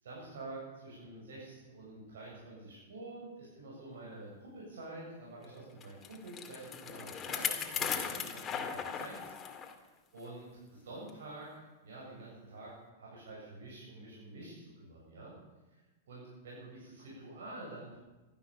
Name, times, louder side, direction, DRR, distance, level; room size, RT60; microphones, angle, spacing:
voice 1, 0.0-9.3 10.1-11.5 11.8-15.3 15.7-18.0, right 2 dB, 80° right, -4 dB, 7.1 m, -48 dB
Bicycle, 5.8-9.7 10.2-10.3 11.1-11.2, left 7 dB, 25° left, 2.2 m, -37 dB
15.5 x 13.0 x 7.1 m, 1.2 s
hypercardioid pair, 120°, 0 cm